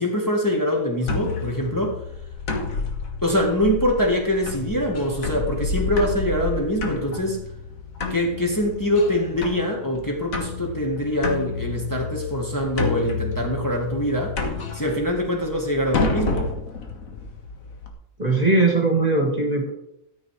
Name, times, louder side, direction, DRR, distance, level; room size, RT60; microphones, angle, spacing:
voice 1, 0.0-2.0 3.2-7.4 8.1-14.4 14.7-16.5, equal, 15° left, -1 dB, 1.8 m, -24 dB
sound 1, 1.0-17.9, left 4 dB, 80° left, 2.0 m, -30 dB
voice 2, 18.2-19.7, right 3 dB, 30° right, 2 dB, 1.8 m, -20 dB
13.0 x 8.0 x 4.8 m, 0.79 s
omnidirectional pair, 1.4 m